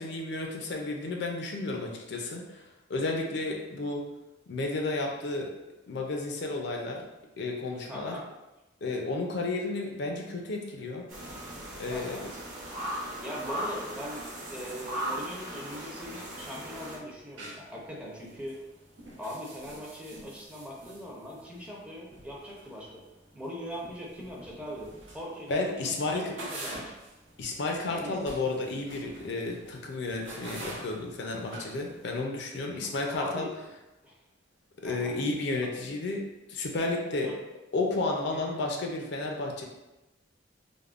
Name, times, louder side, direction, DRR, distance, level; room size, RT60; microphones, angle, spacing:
voice 1, 0.0-2.6 2.9-4.0 4.5-5.5 5.9-7.1 7.4-8.2 8.8-11.1 11.8-12.2 25.5-26.3 27.4-33.5 34.8-36.2 36.5-37.3 37.7-39.7, left 2 dB, 65° left, 1 dB, 0.4 m, -32 dB
voice 2, 7.8-8.2 11.9-12.2 13.2-14.2 14.5-18.6 19.2-23.0 23.3-27.0 27.9-28.2 32.7-33.5 34.0-34.1 34.8-35.1 37.2-37.4 38.3-38.6, equal, 5° right, -4 dB, 0.5 m, -41 dB
sound 1, 11.1-17.0, right 1 dB, 45° right, 0.7 m, -38 dB
sound 2, 16.1-32.2, right 1 dB, 85° right, 0.7 m, -47 dB
3.4 x 2.0 x 2.4 m, 1.0 s
head